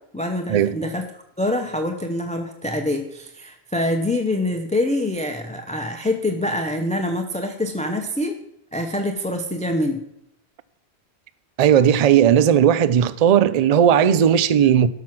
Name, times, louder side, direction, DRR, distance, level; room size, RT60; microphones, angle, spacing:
voice 1, 0.1-1.0 1.4-8.3 8.7-10.0, left 1 dB, 10° left, 0.7 m, -25 dB
voice 2, 11.6-14.9, right 9 dB, 50° right, 0.5 m, -16 dB
12.5 x 5.9 x 5.9 m
omnidirectional pair, 1.1 m